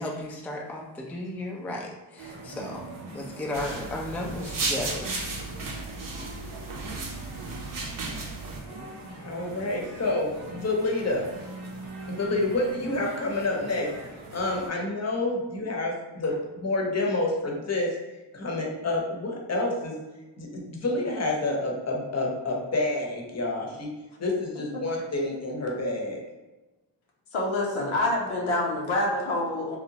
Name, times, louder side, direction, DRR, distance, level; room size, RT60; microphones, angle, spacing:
voice 1, 0.0-2.8 3.1-5.2, left 1 dB, 5° left, -1 dB, 0.3 m, -34 dB
sound 1, 2.2-14.7, right 2 dB, 85° right, 0.7 m, -42 dB
sound 2, 3.5-8.6, right 3 dB, 45° right, 0.6 m, -34 dB
voice 2, 9.2-11.3 12.1-13.9 14.3-18.0 18.3-20.0 20.4-23.9 24.2-26.2, left 2 dB, 35° left, -1 dB, 0.7 m, -28 dB
voice 3, 27.3-29.8, left 2 dB, 85° left, -2 dB, 0.7 m, -26 dB
2.7 x 2.1 x 2.7 m, 1.1 s
cardioid pair, 50°, 47 cm